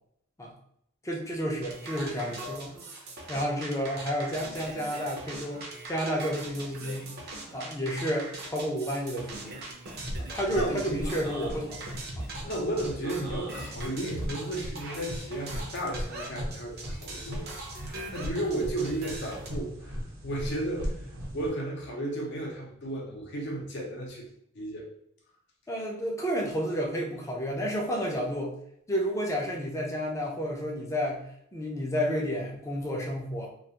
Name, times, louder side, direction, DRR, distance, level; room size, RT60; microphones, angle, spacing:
voice 1, 1.0-2.7 3.3-7.1 7.5-9.6 10.2-11.8 12.2-12.3 25.7-28.5 28.9-31.2 31.5-33.5, equal, 15° left, -1 dB, 0.4 m, -31 dB
sound 1, 1.6-19.5, right 2 dB, 50° right, 0.5 m, -41 dB
sound 2, 9.9-21.5, equal, 85° right, 0.8 m, -39 dB
voice 2, 10.5-11.0 12.4-17.5 17.8-20.9 21.3-24.3 24.5-24.9, right 1 dB, 60° left, 0 dB, 0.6 m, -34 dB
2.4 x 2.2 x 2.8 m, 0.70 s
head